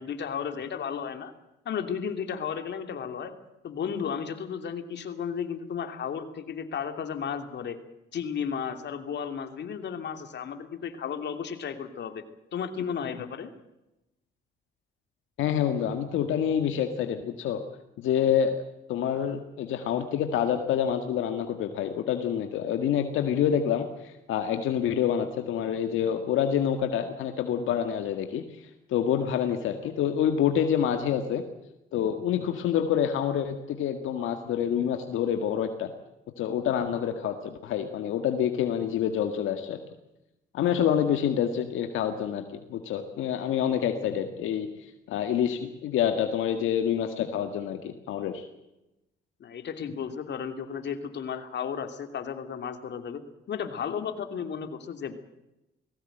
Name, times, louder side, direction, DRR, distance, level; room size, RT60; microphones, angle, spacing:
voice 1, 0.0-1.3 1.6-3.3 3.6-7.8 8.1-12.2 12.5-13.5 49.4-55.2, left 7 dB, 60° left, 7 dB, 2.8 m, -34 dB
voice 2, 15.4-17.6 18.0-18.6 18.9-31.4 31.9-35.9 36.4-39.8 40.5-48.5, left 9 dB, 85° left, 6 dB, 1.8 m, -27 dB
20.0 x 17.0 x 9.2 m, 0.93 s
cardioid pair, 90°, 20 cm